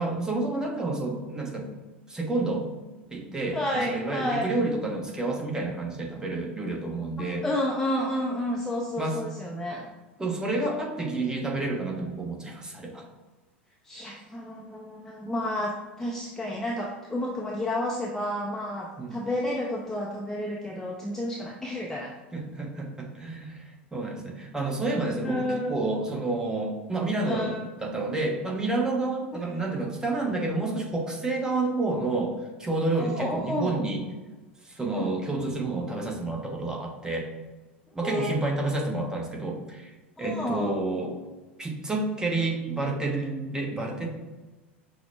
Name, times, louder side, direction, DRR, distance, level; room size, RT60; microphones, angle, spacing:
voice 1, 0.0-1.7 2.1-2.7 3.1-7.4 9.0-9.2 10.2-13.0 19.0-19.2 22.3-27.5 27.8-34.0 34.6-37.3 37.9-41.2 41.6-44.1, right 2 dB, 10° right, 0 dB, 0.9 m, -29 dB
voice 2, 3.5-4.5 7.4-9.9 13.8-22.1 25.2-25.8 27.2-27.6 29.7-29.9 32.9-33.8 34.9-35.1 38.0-38.3 40.2-40.8, left 1 dB, 5° left, -2 dB, 0.5 m, -31 dB
5.9 x 2.0 x 3.3 m, 1.2 s
figure-of-eight pair, 80°, 6 cm